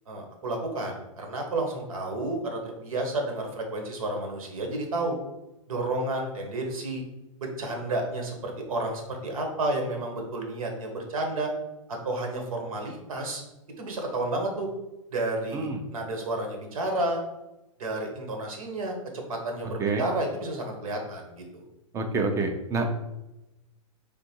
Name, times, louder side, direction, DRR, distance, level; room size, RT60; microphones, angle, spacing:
voice 1, 0.1-5.2 5.7-7.0 7.6-11.5 11.9-13.4 13.8-14.7 15.1-17.2 17.8-21.7, right 2 dB, 80° right, 2 dB, 1.3 m, -31 dB
voice 2, 21.9-22.9, right 3 dB, 15° right, 4 dB, 0.6 m, -27 dB
3.7 x 2.5 x 4.5 m, 0.97 s
hypercardioid pair, 130°, 18 cm